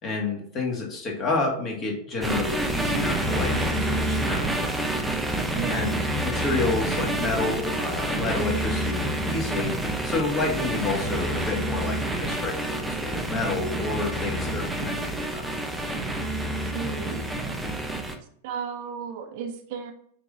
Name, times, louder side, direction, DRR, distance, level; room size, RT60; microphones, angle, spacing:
voice 1, 0.0-4.5 5.7-6.0 6.2-15.6, left 3 dB, 30° left, 0 dB, 2.4 m, -29 dB
sound 1, 2.2-18.2, right 1 dB, 5° right, 1.0 m, -28 dB
voice 2, 16.7-17.2 18.4-19.9, right 7 dB, 50° right, 5 dB, 0.9 m, -34 dB
8.5 x 3.9 x 4.1 m, 0.64 s
figure-of-eight pair, 90°, 0 cm